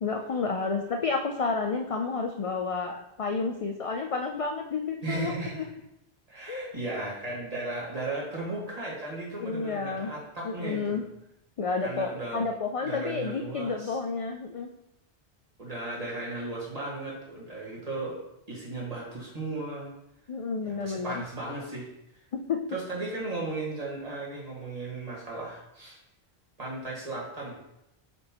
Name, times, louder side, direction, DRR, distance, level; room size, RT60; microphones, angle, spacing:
voice 1, 0.0-5.6 6.5-6.8 9.4-10.1 10.4-11.0 11.6-14.7 20.3-21.2 22.3-22.6, left 4 dB, 55° left, 3 dB, 0.3 m, -30 dB
voice 2, 5.0-5.7 6.3-11.0 11.8-12.5 12.8-14.0 15.6-18.2 18.5-19.9 20.6-21.9 22.7-26.0 26.6-27.6, right 2 dB, 40° right, -5 dB, 1.8 m, -36 dB
7.5 x 4.4 x 2.9 m, 0.85 s
omnidirectional pair, 1.0 m